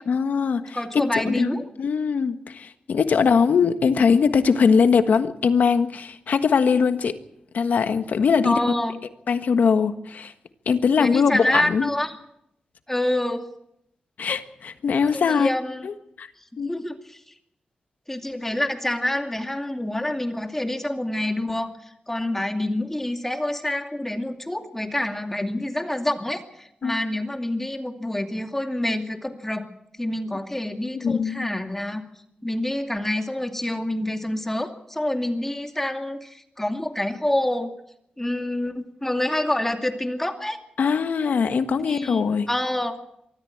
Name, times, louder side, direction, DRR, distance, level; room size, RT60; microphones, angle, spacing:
voice 1, 0.1-7.2 7.5-8.6 9.3-10.3 10.7-11.9 14.2-15.5 15.8-16.3 16.6-16.7 26.8-27.0 30.9-31.5 40.8-42.5, left 6 dB, 80° left, 9 dB, 1.5 m, -21 dB
voice 2, 0.7-1.7 8.4-9.0 11.0-12.2 12.9-13.5 15.1-15.9 16.6-17.3 18.1-29.7 30.0-32.0 32.4-37.7 38.2-40.6 41.8-42.9, left 1 dB, 10° left, 5 dB, 2.4 m, -27 dB
23.5 x 14.5 x 8.7 m, 0.77 s
wide cardioid pair, 85°, 3 cm